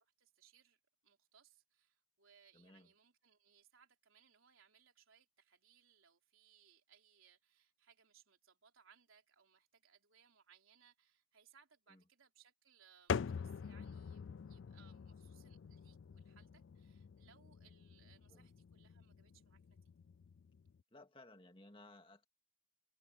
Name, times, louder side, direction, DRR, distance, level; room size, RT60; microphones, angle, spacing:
voice 1, 0.0-19.9, right 7 dB, 85° right, 3.5 m, -69 dB
voice 2, 2.5-2.9 11.9-12.0 18.3-18.5 20.9-22.3, left 2 dB, 25° left, 2.2 m, -59 dB
sound 1, 13.1-20.8, left 6 dB, 65° left, 0.4 m, -46 dB
head